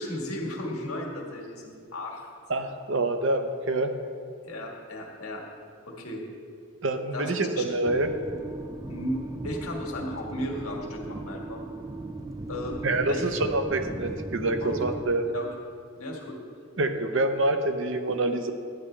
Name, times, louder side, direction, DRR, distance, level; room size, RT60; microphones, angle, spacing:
voice 1, 0.0-2.3 4.4-5.4 5.9-6.2 7.1-7.3 7.6-7.7 8.9-11.6 12.5-13.3 14.6-14.8 15.2-15.5 15.9-16.4, left 1 dB, 80° left, 0 dB, 1.6 m, -35 dB
voice 2, 2.5-3.9 6.8-8.1 12.8-15.2 16.8-18.5, right 2 dB, 60° right, 7 dB, 0.7 m, -26 dB
sound 1, 7.9-15.0, right 2 dB, 15° right, 0.3 m, -38 dB
11.5 x 9.5 x 3.3 m, 2.2 s
head